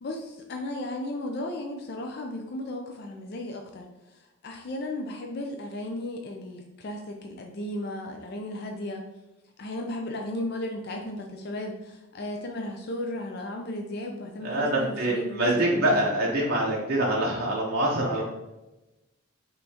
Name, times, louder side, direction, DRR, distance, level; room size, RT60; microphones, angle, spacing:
voice 1, 0.0-9.0 9.6-16.1, left 1 dB, 50° left, 2 dB, 0.4 m, -35 dB
voice 2, 14.4-18.2, right 1 dB, 45° right, -4 dB, 0.7 m, -25 dB
5.4 x 3.1 x 2.8 m, 1.0 s
head